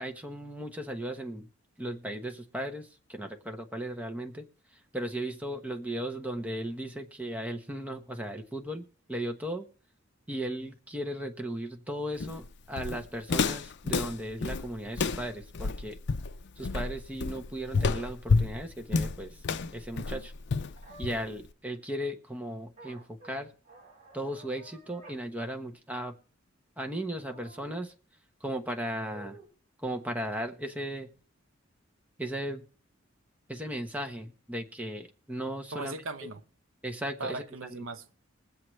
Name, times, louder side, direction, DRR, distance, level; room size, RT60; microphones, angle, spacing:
voice 1, 0.0-1.5 1.8-4.4 4.9-9.6 10.3-16.0 16.6-19.4 19.7-20.3 21.0-23.5 24.1-26.1 26.8-27.9 28.4-29.4 29.8-31.1 32.2-32.6 33.5-35.9 36.8-37.9, right 1 dB, 5° right, 1.0 m, -36 dB
Walk footsteps, 12.2-21.5, left 4 dB, 60° left, 0.5 m, -30 dB
sound 1, 17.8-18.0 20.8-21.3 22.8-23.4 23.6-25.2 25.6-25.7 27.3-27.8 29.0-29.5, right 1 dB, 35° right, 5.9 m, -51 dB
voice 2, 35.7-36.4 37.2-38.1, right 3 dB, 75° right, 0.9 m, -38 dB
21.5 x 7.7 x 3.2 m
head